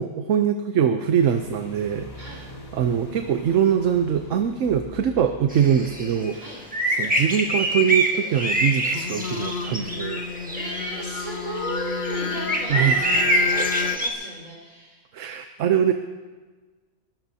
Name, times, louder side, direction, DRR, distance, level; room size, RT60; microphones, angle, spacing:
voice 1, 0.0-2.3 2.7-6.4 7.0-10.2 12.7-13.0 13.5-13.7 15.1-15.9, right 8 dB, 70° right, 7 dB, 1.1 m, -23 dB
sound 1, 1.2-7.9, left 1 dB, 80° left, 2.4 m, -44 dB
voice 2, 2.1-2.5 6.3-6.6 10.4-15.1, right 1 dB, 90° right, -3 dB, 5.5 m, -35 dB
sound 2, 5.5-14.1, right 1 dB, 5° right, 1.5 m, -26 dB
Singing, 8.9-14.0, left 5 dB, 55° left, 0.9 m, -30 dB
29.5 x 13.0 x 2.8 m, 1.3 s
omnidirectional pair, 1.4 m